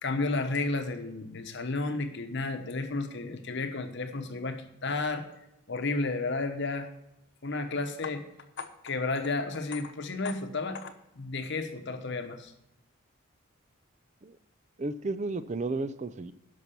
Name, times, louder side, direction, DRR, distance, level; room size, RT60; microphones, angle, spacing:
voice 1, 0.0-5.3 5.7-6.9 7.4-8.2 8.6-12.5, left 3 dB, 55° left, 8 dB, 1.0 m, -32 dB
voice 2, 14.8-16.3, right 3 dB, 35° right, 13 dB, 0.4 m, -33 dB
11.5 x 5.9 x 6.8 m, 0.83 s
head